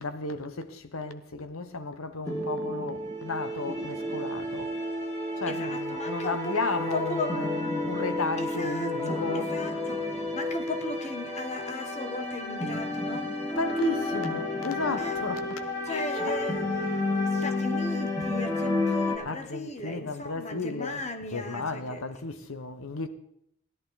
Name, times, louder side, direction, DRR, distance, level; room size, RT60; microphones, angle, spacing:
voice 1, 0.0-4.7 5.4-9.6 13.6-16.4 19.2-21.0 21.3-23.1, left 3 dB, 90° left, 1.1 m, -34 dB
sound 1, 2.3-19.2, left 2 dB, 15° left, 2.1 m, -31 dB
voice 2, 5.4-7.4 8.4-13.3 15.0-15.2 15.8-22.1, left 2 dB, 30° left, 1.2 m, -37 dB
17.0 x 11.0 x 4.1 m
head